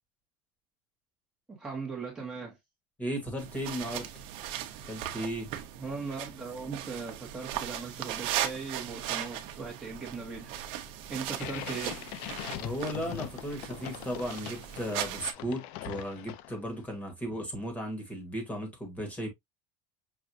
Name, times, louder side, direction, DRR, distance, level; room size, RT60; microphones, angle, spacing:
voice 1, 1.5-2.6 5.8-10.6 11.1-12.1, right 4 dB, 5° right, 1.2 m, -39 dB
voice 2, 3.0-4.1 4.8-5.5 12.6-19.3, equal, 15° left, 1.4 m, -35 dB
sound 1, 3.4-15.3, right 11 dB, 60° right, 0.8 m, -38 dB
sound 2, 11.3-16.8, left 14 dB, 60° left, 0.5 m, -42 dB
6.1 x 2.5 x 2.6 m
cardioid pair, 155°, 11 cm